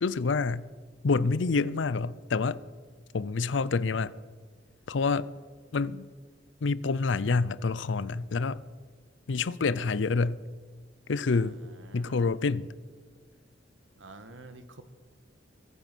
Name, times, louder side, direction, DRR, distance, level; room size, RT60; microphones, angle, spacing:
voice 1, 0.0-0.7 1.0-2.6 3.1-4.1 4.9-5.3 5.7-6.1 6.6-8.6 9.3-10.4 11.1-11.6 11.9-12.7, left 4 dB, 75° left, 0.5 m, -27 dB
voice 2, 11.3-12.4 13.9-14.8, right 2 dB, 90° right, 1.5 m, -49 dB
22.0 x 9.0 x 6.2 m
head